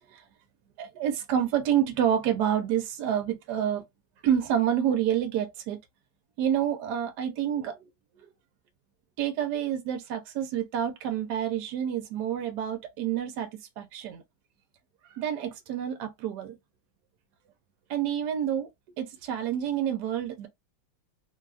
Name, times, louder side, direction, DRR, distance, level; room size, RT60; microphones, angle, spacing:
voice 1, 0.8-3.8 4.2-5.8 6.4-7.9 9.2-13.5 13.8-14.2 15.1-16.6 17.9-18.7 19.0-20.5, right 9 dB, 75° right, 1.1 m, -28 dB
3.2 x 2.3 x 2.3 m
omnidirectional pair, 2.0 m